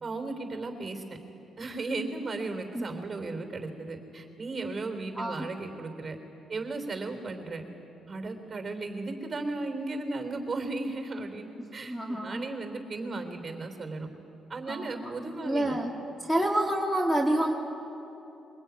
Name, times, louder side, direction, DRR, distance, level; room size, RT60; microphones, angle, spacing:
voice 1, 0.0-1.0 1.6-6.2 6.5-7.6 8.1-14.1 14.5-15.8, right 3 dB, 35° right, 6 dB, 3.6 m, -35 dB
voice 2, 5.2-5.5 11.8-12.4 14.7-15.1 15.4-15.9 16.2-17.5, right 1 dB, ahead, 0 dB, 2.5 m, -28 dB
23.0 x 21.0 x 9.5 m, 3.0 s
cardioid pair, 90°, 0 cm